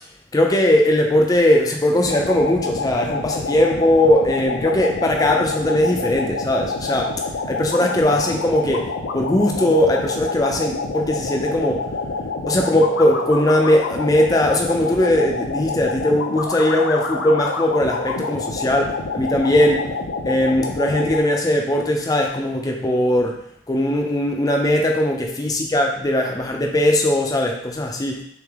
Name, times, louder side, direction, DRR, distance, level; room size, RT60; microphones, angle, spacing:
voice 1, 0.3-11.9 12.5-20.0 20.2-28.2, left 1 dB, 20° left, 2 dB, 0.4 m, -19 dB
sound 1, 2.0-21.2, left 3 dB, 75° left, 0.5 m, -27 dB
3.5 x 3.3 x 3.5 m, 0.69 s
head